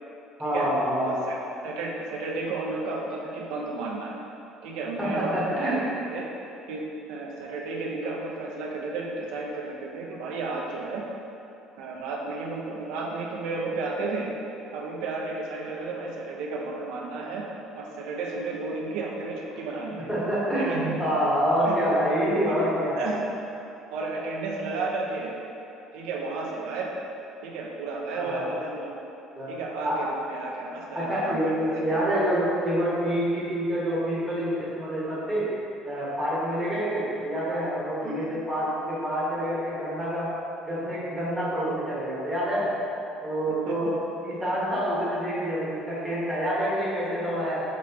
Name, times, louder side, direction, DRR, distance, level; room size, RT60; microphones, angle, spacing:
voice 1, 0.4-1.1 5.0-5.8 20.1-23.0 28.1-28.5 29.4-29.5 29.8-30.0 30.9-35.5 35.8-40.3 40.6-42.7 43.2-44.0 44.2-47.6, equal, 5° right, -9 dB, 1.3 m, -27 dB
voice 2, 1.0-1.4 1.6-4.2 4.6-6.2 6.7-11.0 11.8-14.3 14.7-17.5 17.8-20.1 20.6-21.0 21.7-21.8 22.4-22.6 23.0-23.2 23.9-25.3 25.9-26.9 27.4-29.0 29.5-31.7 38.0-38.2 43.5-44.0, right 3 dB, 80° right, -2 dB, 0.5 m, -33 dB
6.0 x 3.1 x 2.9 m, 2.8 s
cardioid pair, 150°, 0 cm